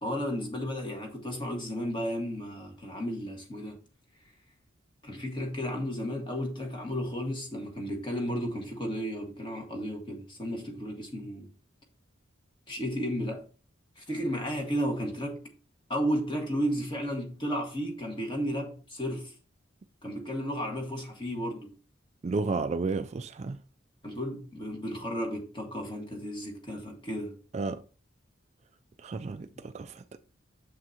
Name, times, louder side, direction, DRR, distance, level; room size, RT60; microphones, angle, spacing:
voice 1, 0.0-3.8 5.0-11.5 12.7-13.5 14.0-15.5 15.9-19.3 20.0-21.7 24.0-27.4, equal, 25° left, 1.7 m, -33 dB
voice 2, 22.2-23.6 27.5-27.8 29.0-30.0, right 3 dB, 35° right, 0.3 m, -32 dB
7.6 x 6.1 x 2.9 m
head